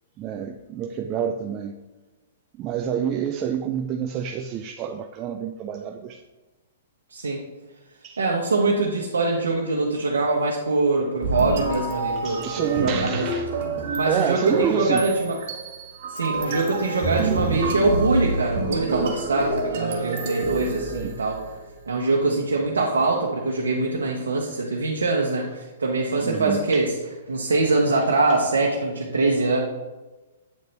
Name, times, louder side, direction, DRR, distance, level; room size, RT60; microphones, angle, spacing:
voice 1, 0.2-1.8 2.6-6.2 8.0-8.2 12.1-13.5 14.0-15.0 20.9-21.2 26.2-26.8, right 8 dB, 30° right, 4 dB, 0.4 m, -28 dB
voice 2, 7.1-7.4 8.2-13.3 14.0-15.4 16.1-21.4 21.9-26.9 27.3-29.6, right 3 dB, 90° right, -1 dB, 0.9 m, -23 dB
sound 1, 11.2-21.5, right 2 dB, 55° right, 1.2 m, -28 dB
8.3 x 3.9 x 3.3 m, 1.2 s
hypercardioid pair, 130°, 0 cm